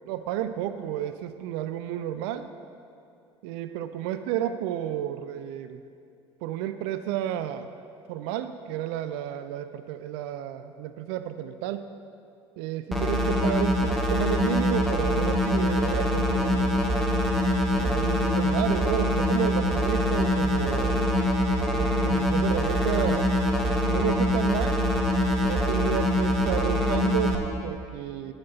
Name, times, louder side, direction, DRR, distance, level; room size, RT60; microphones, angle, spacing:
voice 1, 0.1-2.5 3.4-5.8 6.4-7.7 8.1-11.9 12.6-16.7 17.7-21.1 21.7-23.3 23.9-24.8 25.4-28.3, right 11 dB, 65° right, 11 dB, 0.4 m, -31 dB
sound 1, 12.9-27.3, equal, ahead, 1.5 m, -24 dB
10.0 x 5.8 x 6.6 m, 2.4 s
figure-of-eight pair, 60°, 15 cm